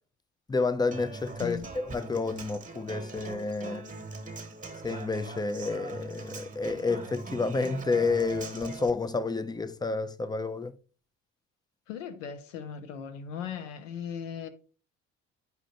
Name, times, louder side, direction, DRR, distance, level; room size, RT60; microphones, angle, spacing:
voice 1, 0.5-3.8 4.8-10.8, left 3 dB, 10° left, 0.5 m, -30 dB
Human voice / Acoustic guitar, 0.9-8.9, right 3 dB, 20° right, 1.2 m, -41 dB
voice 2, 1.4-1.7 11.9-14.5, left 7 dB, 80° left, 0.8 m, -38 dB
9.4 x 5.0 x 2.6 m
hypercardioid pair, 55°, 37 cm